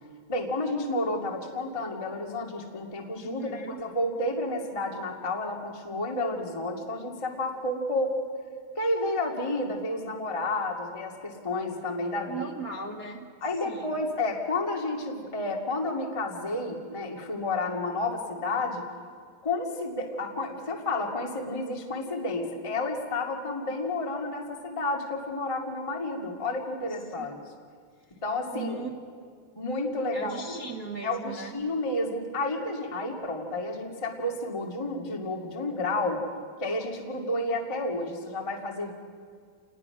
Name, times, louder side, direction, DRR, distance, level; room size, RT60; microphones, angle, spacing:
voice 1, 0.3-8.1 8.7-12.4 13.4-18.8 19.4-27.4 28.2-28.8 29.5-30.6 31.0-36.2 36.6-38.9, left 2 dB, 10° left, 0 dB, 1.7 m, -31 dB
voice 2, 3.2-3.9 12.3-13.3 13.6-14.0 26.7-27.5 28.5-28.9 30.1-31.6, right 4 dB, 50° right, 1 dB, 1.1 m, -38 dB
29.0 x 20.5 x 6.0 m, 2.1 s
omnidirectional pair, 4.0 m